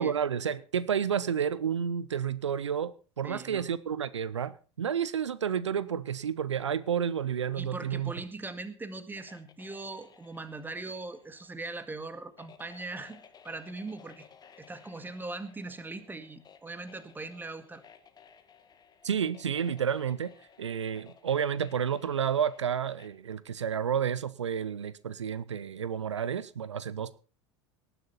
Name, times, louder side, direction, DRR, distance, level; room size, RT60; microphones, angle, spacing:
voice 1, 0.0-4.5 4.8-8.1 19.0-20.3 20.6-27.2, right 8 dB, 80° right, 18 dB, 0.6 m, -30 dB
voice 2, 3.2-3.6 7.6-14.3 14.6-17.8, right 3 dB, 15° right, 11 dB, 2.0 m, -40 dB
sound 1, 9.2-23.1, left 7 dB, 25° left, 1.8 m, -57 dB
19.0 x 11.0 x 4.2 m, 0.35 s
figure-of-eight pair, 80°, 15 cm